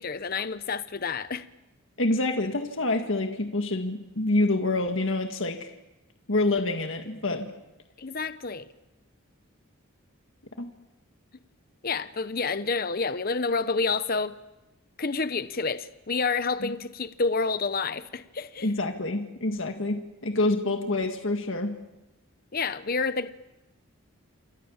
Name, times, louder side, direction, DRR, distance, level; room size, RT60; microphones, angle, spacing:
voice 1, 0.0-1.4 8.0-8.7 11.8-14.3 15.0-18.7 22.5-23.3, left 4 dB, 45° left, 0.9 m, -29 dB
voice 2, 2.0-5.7 6.3-7.5 10.6-10.7 16.6-16.7 18.6-21.7, left 2 dB, 60° left, 1.9 m, -27 dB
28.0 x 24.5 x 7.3 m
head